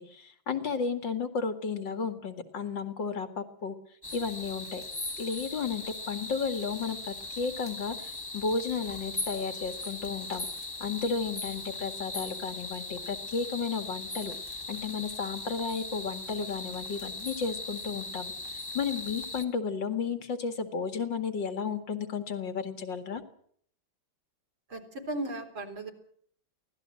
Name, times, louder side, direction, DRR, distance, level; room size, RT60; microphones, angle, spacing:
voice 1, 0.0-3.8 4.1-4.8 5.2-10.5 10.8-23.2, left 5 dB, 65° left, 8 dB, 2.6 m, -33 dB
sound 1, 4.0-19.5, left 2 dB, 10° left, 1.7 m, -39 dB
voice 2, 24.7-25.9, right 1 dB, 80° right, 4 dB, 4.4 m, -36 dB
23.5 x 17.5 x 7.6 m, 0.63 s
omnidirectional pair, 2.2 m